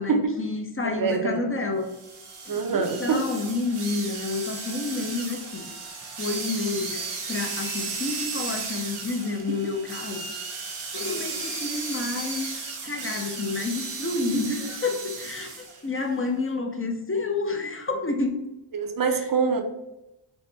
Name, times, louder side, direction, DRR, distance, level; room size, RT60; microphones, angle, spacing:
voice 1, 0.0-1.9 2.4-5.7 6.2-10.2 10.9-12.5 12.8-18.4 19.1-19.3, left 3 dB, 25° left, 3 dB, 0.6 m, -29 dB
voice 2, 0.8-1.4 2.5-3.2 18.7-19.6, right 5 dB, 45° right, 5 dB, 0.6 m, -25 dB
sound 1, 1.9-15.8, right 4 dB, 85° right, 0.9 m, -35 dB
3.5 x 2.1 x 4.0 m, 0.94 s
cardioid pair, 65°, 48 cm